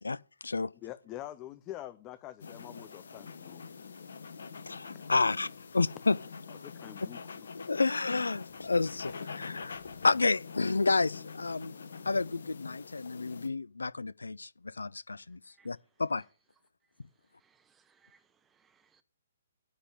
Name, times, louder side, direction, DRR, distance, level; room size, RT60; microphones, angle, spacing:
voice 1, 0.0-0.7 4.7-5.5 5.7-6.2 7.5-11.7 12.0-15.4 15.6-16.2, left 3 dB, 80° left, 0.4 m, -30 dB
voice 2, 0.8-3.6 6.6-7.2, left 14 dB, 25° left, 0.6 m, -45 dB
sound 1, 2.4-13.5, left 5 dB, 65° left, 1.4 m, -45 dB
voice 3, 17.4-18.2 18.5-19.0, right 6 dB, 10° right, 0.9 m, -67 dB
9.8 x 5.3 x 7.5 m
figure-of-eight pair, 130°, 0 cm